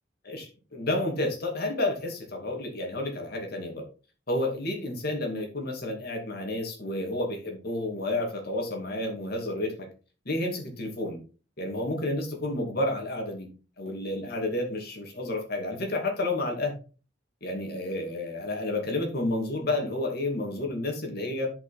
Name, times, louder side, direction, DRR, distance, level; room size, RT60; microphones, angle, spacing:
voice 1, 0.2-3.8 4.3-9.9 10.3-11.2 11.6-13.5 13.8-16.7 17.4-21.5, left 2 dB, 55° left, 2 dB, 2.6 m, -30 dB
10.5 x 5.4 x 4.3 m, 0.35 s
head